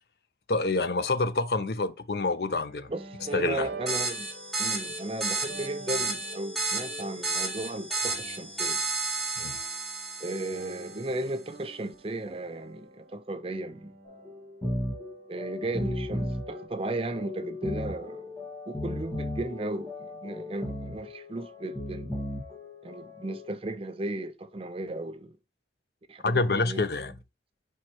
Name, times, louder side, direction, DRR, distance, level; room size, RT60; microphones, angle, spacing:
voice 1, 0.5-2.9 3.3-3.7 9.4-9.6 26.2-27.1, left 3 dB, 60° left, 0.6 m, -27 dB
sound 1, 2.5-15.1 15.6-16.7, right 2 dB, 65° right, 1.3 m, -46 dB
voice 2, 2.9-4.3 4.6-8.8 10.2-13.9 15.3-18.4 18.7-22.2 22.8-25.4 26.1-26.9, right 2 dB, 30° right, 0.5 m, -35 dB
sound 2, 3.9-11.0, right 3 dB, ahead, 2.0 m, -32 dB
sound 3, 14.1-23.5, left 1 dB, 20° left, 2.1 m, -36 dB
5.4 x 4.5 x 4.4 m
head